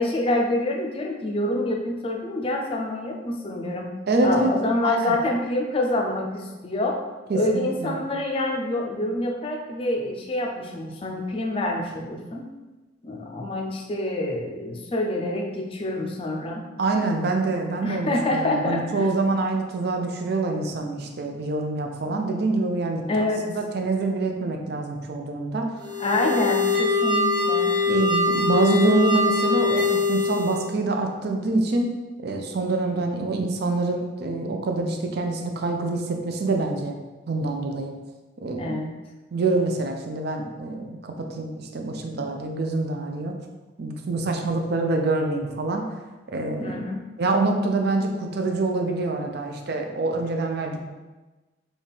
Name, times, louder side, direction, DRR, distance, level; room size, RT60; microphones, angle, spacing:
voice 1, 0.0-4.0 4.2-7.0 7.3-12.5 13.0-16.6 17.8-19.1 23.1-23.5 26.0-27.8 38.6-38.9 46.6-47.0, left 1 dB, 30° left, 0 dB, 0.4 m, -26 dB
voice 2, 4.1-4.5 4.8-5.2 7.3-8.0 16.8-23.2 23.6-25.7 26.2-26.4 27.9-31.9 32.2-36.9 37.3-37.9 38.4-38.7 39.3-43.4 43.8-45.8 46.3-46.8 47.2-50.8, right 3 dB, 55° right, 3 dB, 0.5 m, -25 dB
sound 1, 25.8-30.7, left 3 dB, 20° right, 1.4 m, -23 dB
4.0 x 2.4 x 3.5 m, 1.2 s
head